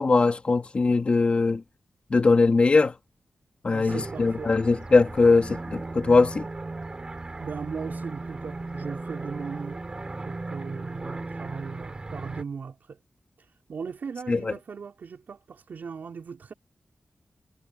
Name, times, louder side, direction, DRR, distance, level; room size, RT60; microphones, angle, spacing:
voice 1, 0.0-1.6 2.1-2.9 3.6-6.5 14.3-14.5, left 3 dB, 35° left, 2.5 m, -21 dB
voice 2, 3.7-4.5 7.4-9.8 10.2-13.0 13.4-16.5, right 5 dB, 65° right, 5.4 m, -38 dB
sound 1, 3.9-12.4, right 2 dB, 25° right, 4.8 m, -36 dB
wide cardioid pair, 155°, 3 cm